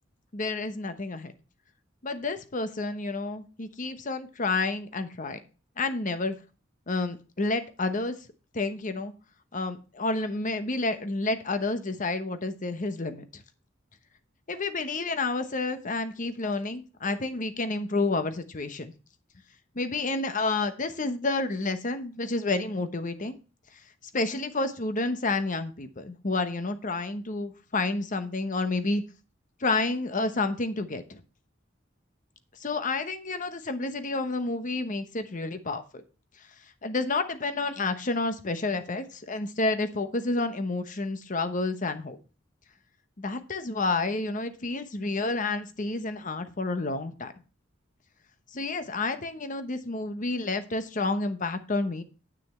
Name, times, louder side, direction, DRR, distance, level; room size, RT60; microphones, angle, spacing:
voice 1, 0.3-1.3 2.0-5.4 5.8-6.3 6.9-8.2 8.5-9.1 9.5-13.4 14.5-18.9 19.7-23.3 24.1-29.0 29.6-31.2 32.6-36.0 36.8-42.2 43.2-47.3 48.5-52.0, left 3 dB, 40° left, 10 dB, 1.0 m, -30 dB
9.5 x 6.5 x 4.3 m, 0.34 s
head